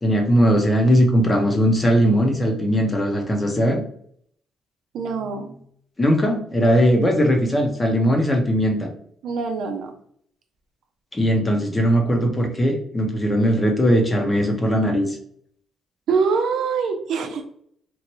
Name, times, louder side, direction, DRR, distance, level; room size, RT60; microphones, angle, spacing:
voice 1, 0.0-3.8 6.0-8.9 11.1-15.2, equal, 20° left, 3 dB, 0.8 m, -19 dB
voice 2, 4.9-5.6 9.2-9.9 16.1-17.4, right 5 dB, 75° right, 5 dB, 0.5 m, -24 dB
3.0 x 2.5 x 2.9 m, 0.64 s
cardioid pair, 90°, 0 cm